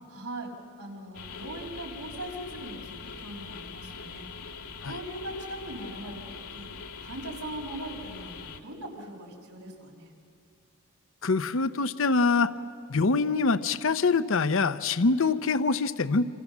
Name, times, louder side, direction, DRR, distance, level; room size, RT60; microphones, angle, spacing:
voice 1, 0.1-0.5 0.8-6.7 7.0-10.1, right 1 dB, 90° right, 0 dB, 5.7 m, -40 dB
sound 1, 1.1-8.6, left 5 dB, 80° left, 2.1 m, -42 dB
voice 2, 11.2-12.5 12.9-16.3, left 4 dB, 60° left, 13 dB, 0.7 m, -24 dB
27.5 x 27.0 x 7.3 m, 2.5 s
head